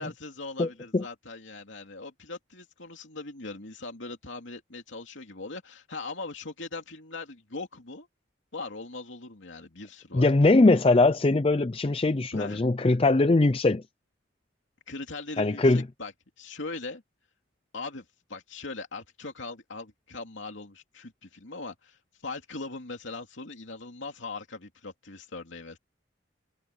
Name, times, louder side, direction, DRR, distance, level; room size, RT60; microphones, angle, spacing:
voice 1, 0.0-8.1 8.5-10.3 12.3-12.7 14.9-16.1 16.4-17.0 17.7-18.0 18.3-25.8, left 3 dB, 80° left, 2.7 m, -40 dB
voice 2, 0.6-1.0 10.1-13.8 15.4-15.9, left 2 dB, 30° left, 0.4 m, -21 dB
head